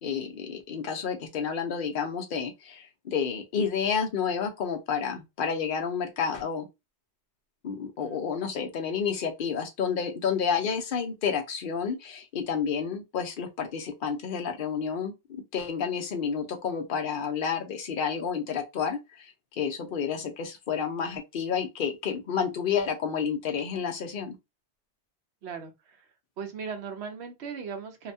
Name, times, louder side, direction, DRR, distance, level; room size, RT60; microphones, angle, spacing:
voice 1, 0.0-6.7 7.6-15.1 15.5-24.3, left 6 dB, 55° left, 0.8 m, -30 dB
voice 2, 25.4-26.1 26.4-28.1, right 6 dB, 85° right, 1.0 m, -38 dB
2.7 x 2.2 x 2.6 m
omnidirectional pair, 1.1 m